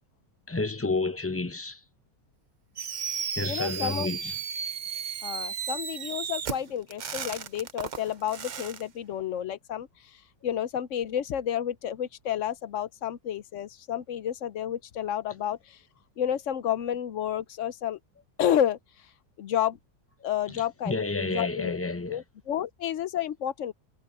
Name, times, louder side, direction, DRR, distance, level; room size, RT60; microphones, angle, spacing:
voice 1, 0.5-1.8 3.4-4.4 20.5-22.2, left 3 dB, 15° left, 0.5 m, -30 dB
Fireworks, 2.8-8.8, right 7 dB, 55° right, 0.5 m, -34 dB
voice 2, 3.4-4.1 5.2-9.9 10.4-15.8 16.2-18.0 18.4-18.8 19.4-19.8 20.2-21.8 22.1-23.7, left 10 dB, 60° left, 0.9 m, -30 dB
omnidirectional pair, 1.7 m